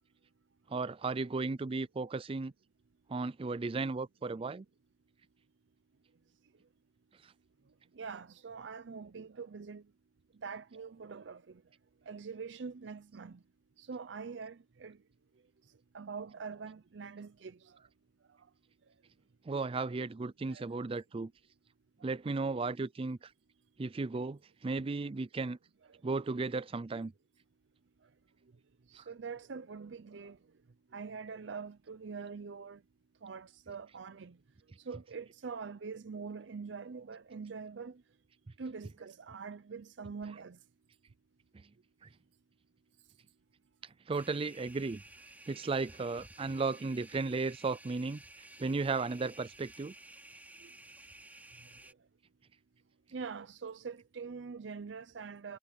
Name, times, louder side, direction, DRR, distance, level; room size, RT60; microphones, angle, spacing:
voice 1, 0.7-2.5 3.1-4.6 19.5-21.3 22.0-23.3 23.8-25.6 26.0-27.1 29.0-29.1 42.0-42.1 44.1-45.0 45.5-48.2 48.6-49.9, right 3 dB, 30° right, 0.4 m, -35 dB
voice 2, 7.9-9.8 10.4-11.6 12.1-13.4 13.8-15.0 15.9-17.8 20.5-20.7 25.9-26.0 28.9-30.4 30.9-32.8 33.2-34.4 34.8-38.0 38.6-40.6 50.6-50.7 53.1-55.6, right 5 dB, 75° right, 0.6 m, -44 dB
sound 1, 44.1-51.9, right 2 dB, 10° right, 3.3 m, -54 dB
head